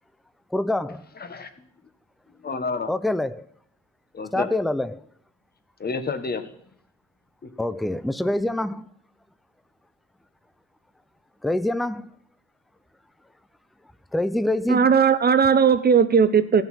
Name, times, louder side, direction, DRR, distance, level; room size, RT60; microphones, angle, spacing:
voice 1, 0.5-1.0 2.9-3.4 4.3-5.0 7.6-8.9 11.4-12.1 14.1-14.9, left 1 dB, ahead, 0.5 m, -25 dB
voice 2, 2.4-2.9 4.1-4.5 5.8-6.5 7.4-7.7, left 4 dB, 30° left, 1.3 m, -30 dB
voice 3, 14.7-16.6, right 6 dB, 30° right, 0.7 m, -17 dB
16.0 x 5.8 x 5.5 m
cardioid pair, 90°, 30 cm